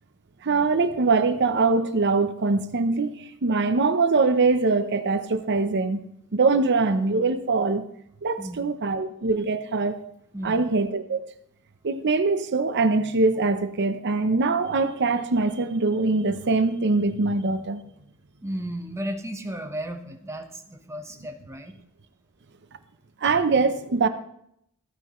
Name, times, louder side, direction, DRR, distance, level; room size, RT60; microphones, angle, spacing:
voice 1, 0.4-6.0 6.3-7.9 8.2-10.0 10.4-11.2 11.8-17.8 23.2-24.1, right 3 dB, 55° right, 10 dB, 0.7 m, -23 dB
voice 2, 18.4-21.7, right 1 dB, 15° right, 5 dB, 1.0 m, -34 dB
14.5 x 9.6 x 3.1 m, 0.74 s
head